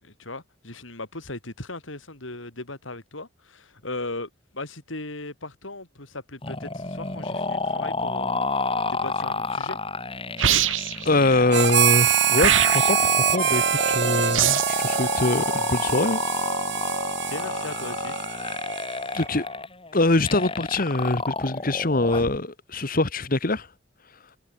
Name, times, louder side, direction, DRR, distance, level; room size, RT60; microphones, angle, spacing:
voice 1, 0.0-8.4 8.9-9.8 17.3-18.2, left 2 dB, 90° left, 4.6 m, -37 dB
sound 1, 6.4-22.4, left 3 dB, 30° left, 4.6 m, -30 dB
sound 2, 10.4-11.1 12.4-13.1 14.3-14.8, right 9 dB, 90° right, 1.9 m, -22 dB
voice 2, 11.0-16.2 19.1-19.4 19.9-23.7, left 2 dB, 45° left, 1.7 m, -23 dB
Harmonica, 11.5-19.2, right 9 dB, 65° right, 2.6 m, -25 dB
head